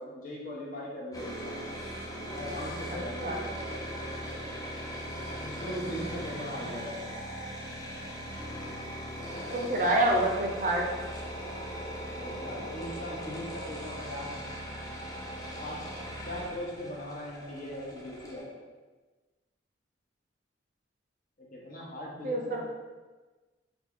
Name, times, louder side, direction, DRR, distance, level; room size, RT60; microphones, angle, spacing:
voice 1, 0.0-1.6 2.3-4.1 5.4-7.1 12.1-14.6 15.6-15.8 16.2-18.6 21.4-22.6, left 1 dB, 50° left, -4 dB, 0.8 m, -39 dB
sound 1, 1.1-18.4, equal, 20° left, 0.6 m, -39 dB
voice 2, 2.9-3.4 5.8-6.1 6.6-6.8 9.5-10.9 22.2-22.6, right 1 dB, 45° right, 0 dB, 0.5 m, -28 dB
3.4 x 2.3 x 3.6 m, 1.2 s
head